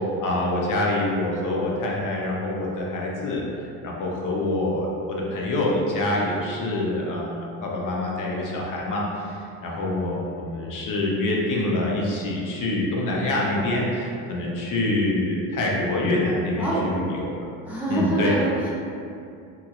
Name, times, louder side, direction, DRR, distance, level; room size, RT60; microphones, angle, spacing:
voice 1, 0.2-3.4 3.8-17.3 17.9-18.3, left 1 dB, 45° left, -2 dB, 0.7 m, -25 dB
voice 2, 16.5-16.9 17.6-18.7, right 2 dB, 5° right, -7 dB, 0.3 m, -25 dB
2.9 x 2.8 x 2.4 m, 2.5 s
supercardioid pair, 85°, 44 cm